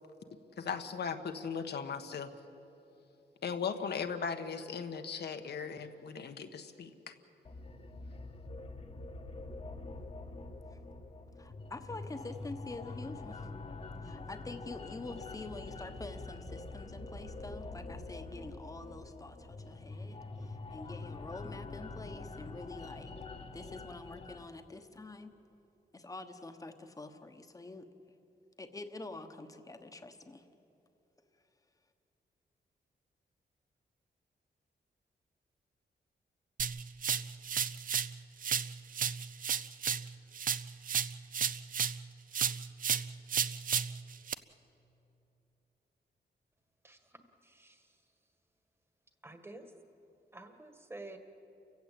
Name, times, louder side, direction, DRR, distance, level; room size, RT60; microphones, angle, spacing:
voice 1, 0.6-2.3 3.4-7.1, left 6 dB, 70° left, 7 dB, 1.4 m, -38 dB
sound 1, 7.4-24.4, left 3 dB, 35° left, 1.3 m, -45 dB
voice 2, 11.4-13.5 14.0-23.1 23.5-25.3 25.9-27.9 28.6-30.5, left 2 dB, 20° left, 8 dB, 1.2 m, -46 dB
sound 2, 36.6-38.1 38.4-42.0 42.3-44.3, right 7 dB, 50° right, 0.6 m, -33 dB
voice 3, 46.8-48.0 49.2-49.7 50.3-51.2, right 2 dB, 15° right, 7 dB, 1.7 m, -50 dB
30.0 x 16.0 x 8.5 m, 2.9 s
wide cardioid pair, 150°, 18 cm